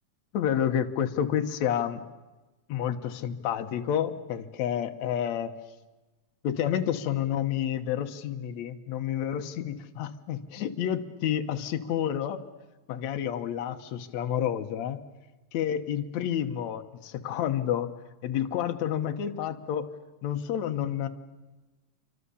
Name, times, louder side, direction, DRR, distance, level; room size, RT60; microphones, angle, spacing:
voice 1, 0.3-2.0 2.7-5.5 6.4-12.4 12.9-15.0 15.5-17.9 18.2-20.0 20.2-21.1, left 9 dB, 70° left, 7 dB, 2.4 m, -29 dB
28.5 x 24.5 x 7.1 m, 1.2 s
omnidirectional pair, 3.5 m